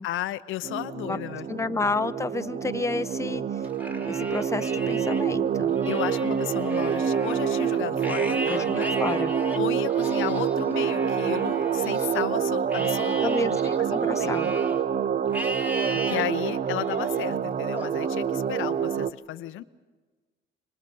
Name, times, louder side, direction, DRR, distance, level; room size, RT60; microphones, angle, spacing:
voice 1, 0.0-1.5 5.9-8.9 9.5-13.5 13.9-14.3 15.9-19.6, left 14 dB, 85° left, 12 dB, 0.7 m, -34 dB
sound 1, 0.6-19.1, right 7 dB, 40° right, 0.7 m, -27 dB
voice 2, 1.5-3.4 4.1-5.8 8.5-9.3 13.2-14.5, left 3 dB, 15° left, 10 dB, 0.8 m, -30 dB
Livestock farm animals working animals, 3.6-5.2 5.7-12.2 12.7-14.8 15.3-16.2 16.8-17.2 17.8-18.8, equal, 10° right, 2.2 m, -37 dB
27.0 x 24.5 x 5.4 m, 1.3 s
cardioid pair, 90°, 20 cm